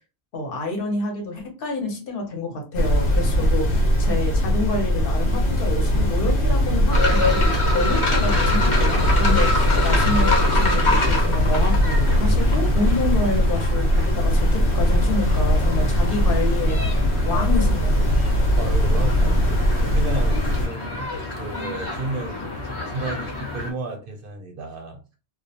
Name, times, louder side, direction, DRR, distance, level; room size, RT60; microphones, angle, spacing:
voice 1, 0.3-17.0 17.2-18.2, left 2 dB, 60° left, 0.8 m, -28 dB
sound 1, 2.7-20.7, equal, 85° left, 1.0 m, -20 dB
sound 2, 6.9-23.7, left 2 dB, 30° left, 0.7 m, -27 dB
voice 2, 18.6-25.2, right 3 dB, 60° right, 0.6 m, -33 dB
2.4 x 2.0 x 2.7 m
omnidirectional pair, 1.1 m